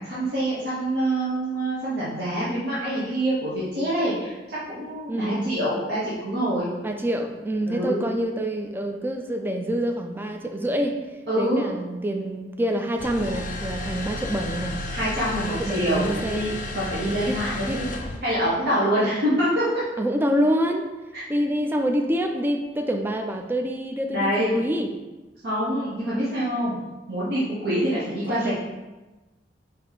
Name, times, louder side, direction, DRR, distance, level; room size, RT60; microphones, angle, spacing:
voice 1, 0.0-6.7 7.7-8.0 11.3-11.7 14.9-16.0 16.3-17.8 18.2-19.6 21.1-21.2 24.1-24.6 25.4-26.8 27.1-28.5, equal, 65° right, -8 dB, 0.9 m, -25 dB
voice 2, 5.1-5.5 6.8-11.0 11.4-14.8 15.5-16.5 17.3-17.4 17.7-17.8 19.0-19.2 20.0-20.9 21.3-24.9 28.3-28.5, equal, 10° right, 4 dB, 0.3 m, -26 dB
sound 1, 13.0-18.2, left 2 dB, 45° left, 0.5 m, -33 dB
4.4 x 2.7 x 4.0 m, 1.1 s
head